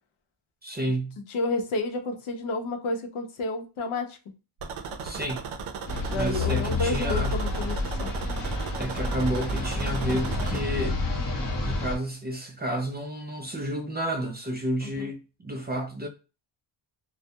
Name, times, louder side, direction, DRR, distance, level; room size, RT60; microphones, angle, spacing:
voice 1, 0.6-1.2 5.0-5.4 6.1-7.3 8.8-11.0 11.6-16.1, right 1 dB, 20° right, 0.3 m, -31 dB
voice 2, 1.3-4.2 6.1-8.1 14.8-15.1, left 2 dB, 75° left, 0.7 m, -30 dB
sound 1, 4.6-10.6, right 5 dB, 75° right, 0.6 m, -36 dB
sound 2, 5.9-12.0, left 2 dB, 45° left, 0.8 m, -29 dB
2.2 x 2.1 x 2.6 m
wide cardioid pair, 115°, 49 cm